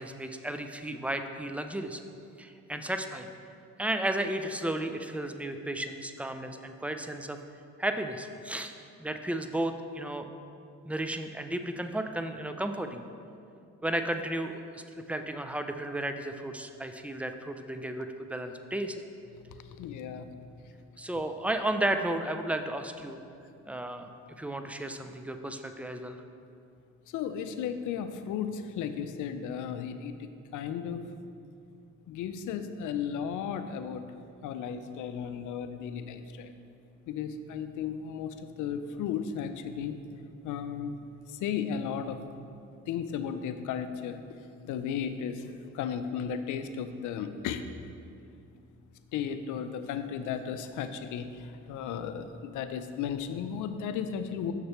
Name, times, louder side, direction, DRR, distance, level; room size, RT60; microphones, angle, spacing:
voice 1, 0.0-2.0 2.4-3.3 3.8-7.4 7.8-8.7 9.0-10.3 10.9-13.0 13.8-19.0 21.0-23.2 23.7-24.1 24.4-26.2, right 1 dB, 5° right, 7 dB, 0.3 m, -33 dB
voice 2, 19.5-20.3 27.1-31.0 32.1-34.0 34.4-36.5 37.1-40.0 40.4-41.0 41.3-42.2 42.9-44.2 44.6-45.4 45.7-47.6 49.1-54.5, left 7 dB, 80° left, 9 dB, 0.5 m, -35 dB
6.6 x 6.5 x 3.0 m, 2.5 s
cardioid pair, 90°, 30 cm